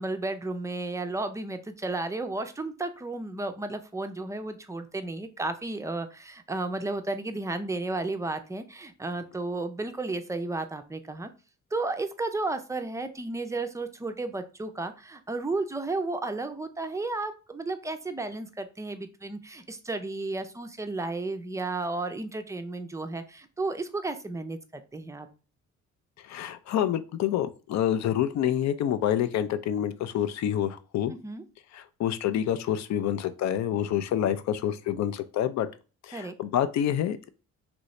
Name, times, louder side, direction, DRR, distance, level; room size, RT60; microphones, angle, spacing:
voice 1, 0.0-11.3 11.7-25.3 31.2-31.4 36.1-36.3, right 2 dB, 10° right, 8 dB, 0.4 m, -33 dB
voice 2, 26.3-31.1 31.7-35.7 36.1-37.3, left 10 dB, 65° left, 12 dB, 0.5 m, -27 dB
3.0 x 2.6 x 3.1 m, 0.34 s
cardioid pair, 90°, 30 cm